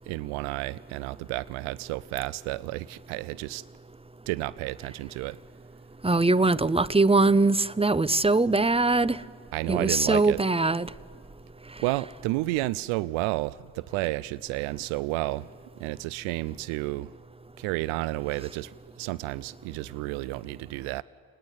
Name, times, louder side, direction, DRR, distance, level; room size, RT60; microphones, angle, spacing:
voice 1, 0.1-3.6 4.3-5.4 9.5-10.4 11.8-17.1 17.6-21.0, right 19 dB, 85° right, 0.6 m, -31 dB
voice 2, 6.0-9.2 9.7-10.9, right 3 dB, 10° right, 0.9 m, -22 dB
28.5 x 19.5 x 9.4 m
hypercardioid pair, 40°, 47 cm